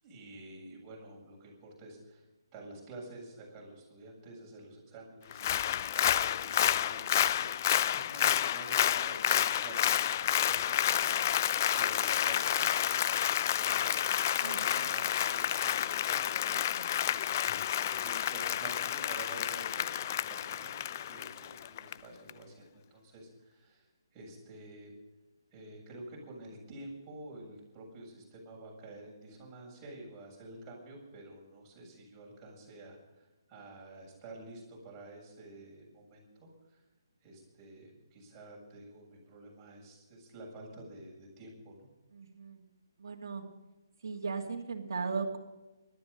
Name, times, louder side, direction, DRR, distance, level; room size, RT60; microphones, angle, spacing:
voice 1, 0.0-2.2 2.5-17.3 17.6-23.9 24.1-24.9 25.5-36.8 37.2-41.9, right 2 dB, 20° right, -2 dB, 7.5 m, -50 dB
Applause, 5.3-21.9 22.3-22.4, left 11 dB, 40° left, 0.5 m, -30 dB
voice 2, 14.4-15.1 16.5-16.9 42.1-42.6 43.0-43.4 44.0-45.4, right 4 dB, 55° right, 0 dB, 2.6 m, -38 dB
19.0 x 13.0 x 5.4 m, 1.1 s
figure-of-eight pair, 140°, 2 cm